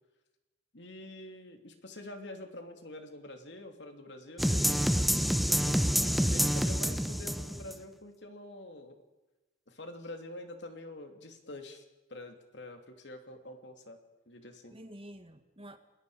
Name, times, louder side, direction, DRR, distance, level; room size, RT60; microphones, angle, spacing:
voice 1, 0.7-5.0 5.5-5.9 6.3-9.0 9.7-11.8 12.1-14.0 14.3-14.8, left 2 dB, 70° left, 5 dB, 2.9 m, -46 dB
sound 1, 4.4-7.7, equal, ahead, 0.8 m, -27 dB
voice 2, 6.1-6.4 6.8-7.0 14.7-15.8, equal, 30° right, 8 dB, 1.7 m, -48 dB
29.0 x 21.0 x 5.1 m, 1.1 s
head